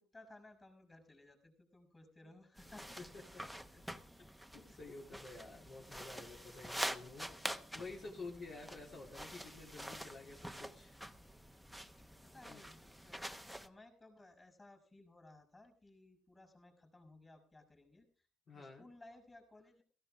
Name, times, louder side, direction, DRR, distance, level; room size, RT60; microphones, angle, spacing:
voice 1, 0.1-3.0 3.7-3.8 5.5-5.6 12.2-18.3 18.5-19.8, left 2 dB, 20° left, 4 dB, 5.2 m, -60 dB
voice 2, 2.6-3.8 4.5-11.0 12.5-12.7 18.5-18.9, left 3 dB, 50° left, -3 dB, 3.8 m, -51 dB
sound 1, 2.6-13.7, equal, ahead, 1.0 m, -47 dB
16.5 x 15.0 x 3.6 m, 0.40 s
cardioid pair, 100°, 0 cm